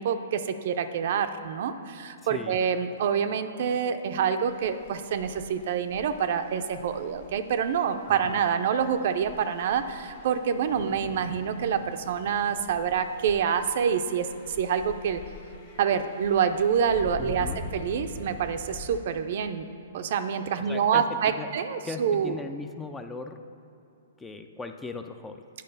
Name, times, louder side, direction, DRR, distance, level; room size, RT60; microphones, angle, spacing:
voice 1, 0.0-15.2 15.8-19.7 19.9-22.4, right 7 dB, 60° right, 9 dB, 0.5 m, -27 dB
sound 1, 4.5-19.0, left 4 dB, 50° left, 1.4 m, -45 dB
voice 2, 17.2-17.6 20.7-21.5 21.9-23.4 24.2-25.4, left 3 dB, 10° left, 7 dB, 0.4 m, -38 dB
9.1 x 4.8 x 5.4 m, 2.8 s
hypercardioid pair, 135°, 0 cm